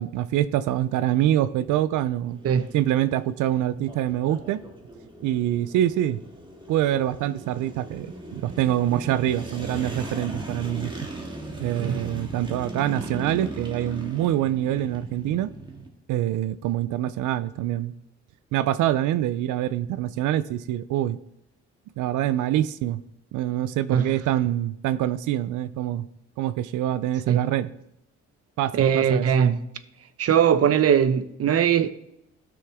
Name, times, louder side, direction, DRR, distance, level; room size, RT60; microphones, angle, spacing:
voice 1, 0.0-2.4 2.7-4.6 5.2-6.2 6.7-10.9 11.6-15.5 16.1-17.9 18.5-21.2 22.0-23.0 23.3-26.0 26.4-27.7 28.6-29.3, right 12 dB, 80° right, 0.5 m, -25 dB
sound 1, 0.9-15.9, right 2 dB, 15° right, 1.6 m, -38 dB
voice 2, 28.7-29.6 30.2-31.9, right 8 dB, 55° right, 0.7 m, -20 dB
13.0 x 6.2 x 3.5 m
cardioid pair, 90°, 30 cm